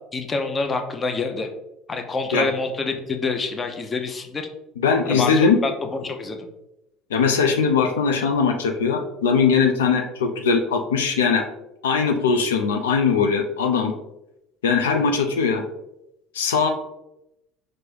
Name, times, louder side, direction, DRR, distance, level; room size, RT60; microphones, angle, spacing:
voice 1, 0.1-1.5 1.9-4.5 5.0-6.4, left 3 dB, 30° left, 5 dB, 0.6 m, -27 dB
voice 2, 4.8-5.6 7.1-11.4 11.8-13.9 14.6-15.6 16.3-16.7, left 5 dB, 85° left, 3 dB, 0.4 m, -20 dB
4.3 x 2.6 x 3.3 m, 0.87 s
hypercardioid pair, 70°, 0 cm